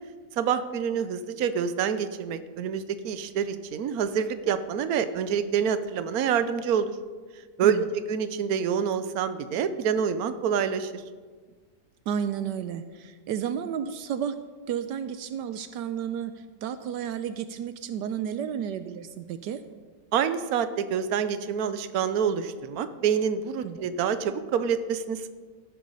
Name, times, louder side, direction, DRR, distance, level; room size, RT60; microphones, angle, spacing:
voice 1, 0.3-7.0 7.6-11.0 20.1-25.3, right 7 dB, 65° right, 11 dB, 1.2 m, -27 dB
voice 2, 7.6-7.9 12.1-14.4 14.7-19.6 23.6-23.8, right 8 dB, 80° right, 11 dB, 1.3 m, -32 dB
16.5 x 9.4 x 5.5 m, 1.5 s
omnidirectional pair, 1.9 m